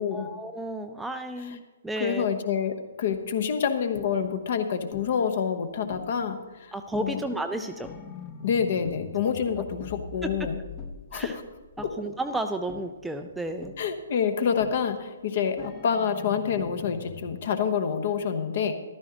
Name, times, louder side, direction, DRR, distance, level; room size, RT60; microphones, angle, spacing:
voice 1, 0.1-2.3 6.7-7.9 10.2-10.3 11.1-11.4 11.8-13.7, right 1 dB, 5° right, 6 dB, 0.5 m, -32 dB
voice 2, 2.0-7.2 8.4-10.6 11.1-11.4 11.8-11.9 13.8-18.7, left 7 dB, 45° left, 8 dB, 1.1 m, -27 dB
sound 1, 3.1-3.4 3.9-4.5 4.9-5.3 5.9-6.4 6.9-12.2 12.7-13.2 13.6-14.1 14.6-15.1 15.6-17.4, left 5 dB, 15° left, 0.8 m, -43 dB
14.0 x 12.5 x 3.0 m, 1.2 s
figure-of-eight pair, 130°, 0 cm